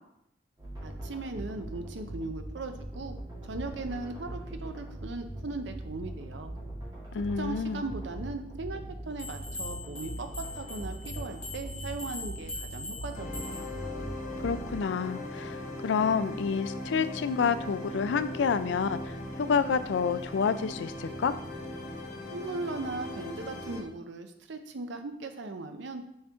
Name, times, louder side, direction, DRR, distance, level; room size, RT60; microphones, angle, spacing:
sound 1, 0.6-14.8, right 1 dB, 20° right, 2.0 m, -41 dB
voice 1, 0.8-3.2 3.4-6.5 7.4-13.6 22.3-26.0, right 3 dB, 75° right, 7 dB, 0.6 m, -38 dB
voice 2, 7.1-7.8 14.4-21.3, left 6 dB, 75° left, 13 dB, 0.4 m, -29 dB
sound 2, 9.2-13.8, left 2 dB, 5° left, 1.7 m, -42 dB
sound 3, 13.1-23.8, left 1 dB, 40° left, 0.7 m, -39 dB
6.5 x 4.3 x 3.5 m, 0.77 s
head